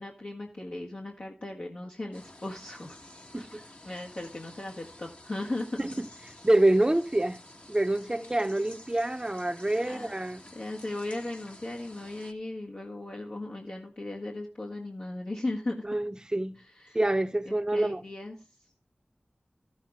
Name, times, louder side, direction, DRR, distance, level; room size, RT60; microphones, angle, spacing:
voice 1, 0.0-3.0 3.4-6.0 8.0-8.3 9.9-10.1 10.5-15.9 16.8-17.0 17.5-18.4, left 2 dB, 65° left, 1.7 m, -37 dB
sound 1, 2.1-12.3, left 1 dB, 50° left, 1.6 m, -51 dB
voice 2, 6.4-7.4 7.7-10.4 15.8-16.6 16.9-18.0, right 1 dB, 25° right, 0.8 m, -26 dB
14.0 x 7.4 x 3.6 m
wide cardioid pair, 40°, 3 cm